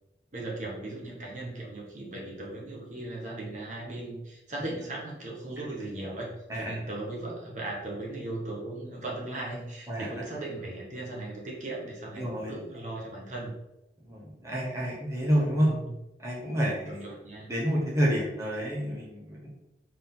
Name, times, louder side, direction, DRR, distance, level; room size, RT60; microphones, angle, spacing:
voice 1, 0.3-13.5 15.6-15.9 16.9-17.5, right 2 dB, 45° right, -3 dB, 1.7 m, -37 dB
voice 2, 12.2-12.5 14.0-15.7 16.2-17.1 17.5-19.5, equal, 15° right, -5 dB, 1.6 m, -28 dB
6.4 x 4.6 x 3.9 m, 0.91 s
head